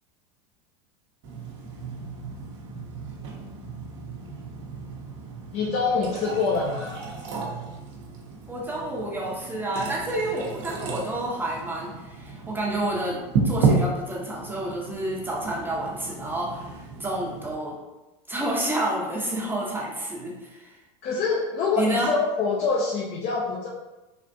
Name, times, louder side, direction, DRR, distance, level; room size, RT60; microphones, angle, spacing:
sound 1, 1.2-17.5, right 4 dB, 70° right, 0.7 m, -32 dB
voice 1, 5.5-7.0 21.0-23.7, left 4 dB, 40° left, -3 dB, 0.5 m, -25 dB
voice 2, 8.5-17.8 18.3-20.8 21.8-22.1, right 1 dB, 10° right, -4 dB, 0.7 m, -29 dB
3.4 x 2.4 x 2.6 m, 1.0 s
hypercardioid pair, 105°, 17 cm